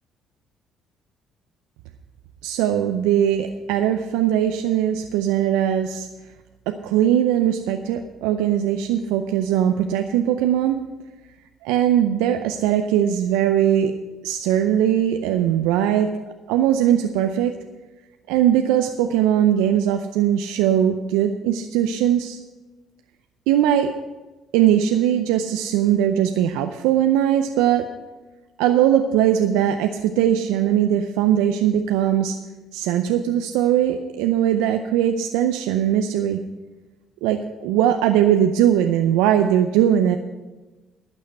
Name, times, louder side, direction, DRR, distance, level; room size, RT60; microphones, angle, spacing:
voice 1, 2.4-6.1 6.7-10.8 11.6-13.9 14.2-16.1 16.5-17.5 18.3-22.4 23.5-23.9 24.5-27.9 28.6-32.4 32.7-36.4 37.2-40.2, right 10 dB, 85° right, 6 dB, 0.5 m, -20 dB
11.5 x 6.5 x 7.9 m, 1.2 s
supercardioid pair, 70°, 0 cm